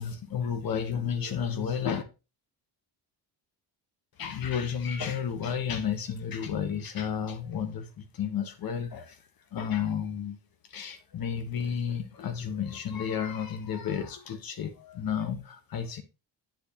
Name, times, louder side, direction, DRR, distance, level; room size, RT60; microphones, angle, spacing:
voice 1, 0.0-2.0 4.2-9.2 9.5-10.4 10.7-16.0, left 7 dB, 55° left, 1.3 m, -32 dB
8.4 x 6.3 x 2.9 m
cardioid pair, 130°, 42 cm